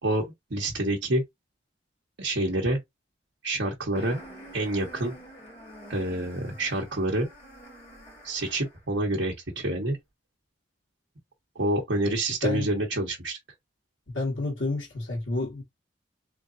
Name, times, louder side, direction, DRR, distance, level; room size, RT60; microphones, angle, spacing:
voice 1, 0.0-1.2 2.2-2.8 3.4-4.2 4.5-5.1 5.9-7.3 8.2-10.0 11.5-13.4, right 1 dB, 65° right, 1.1 m, -27 dB
sound 1, 3.9-8.8, equal, 35° left, 2.6 m, -47 dB
voice 2, 14.1-15.6, left 2 dB, 80° left, 1.6 m, -29 dB
3.9 x 3.4 x 2.6 m
head